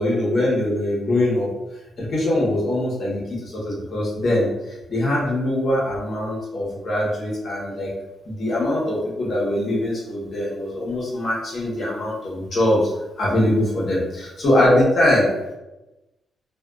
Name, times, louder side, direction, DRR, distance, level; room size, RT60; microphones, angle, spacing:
voice 1, 0.0-1.5 2.0-7.9 8.2-12.9 13.2-15.3, left 1 dB, 45° left, -5 dB, 1.1 m, -22 dB
3.3 x 2.3 x 2.4 m, 1.0 s
cardioid pair, 115°, 0 cm